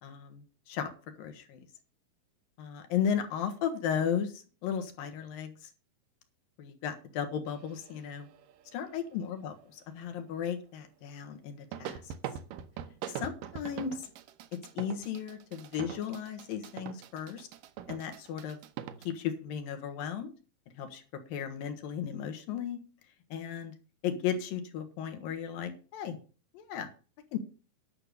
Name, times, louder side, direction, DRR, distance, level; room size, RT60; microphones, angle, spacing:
voice 1, 0.0-0.9 1.2-1.6 2.6-5.7 6.6-8.3 8.7-9.5 9.9-12.1 13.1-14.1 14.8-17.5 17.9-18.6 19.0-20.3 20.7-21.0 21.3-22.8 23.3-23.7 24.0-26.2 26.5-26.9 27.3-27.4, left 8 dB, 70° left, 6 dB, 3.0 m, -35 dB
sound 1, 7.5-9.4 11.7-19.1, right 9 dB, 75° right, 2.1 m, -43 dB
10.5 x 6.7 x 6.7 m, 0.37 s
omnidirectional pair, 4.5 m